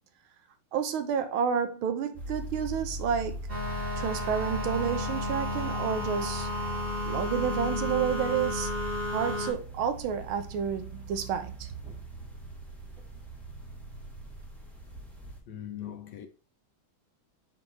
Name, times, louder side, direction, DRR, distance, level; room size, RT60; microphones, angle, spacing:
voice 1, 0.7-3.4 4.0-6.5 7.1-8.7 9.1-11.7, right 7 dB, 85° right, 1.6 m, -30 dB
sound 1, 2.1-15.4, right 1 dB, ahead, 1.3 m, -40 dB
sound 2, 3.5-9.5, left 1 dB, 30° right, 1.7 m, -33 dB
voice 2, 15.5-16.3, left 10 dB, 65° left, 1.2 m, -40 dB
5.9 x 3.8 x 4.4 m
omnidirectional pair, 2.3 m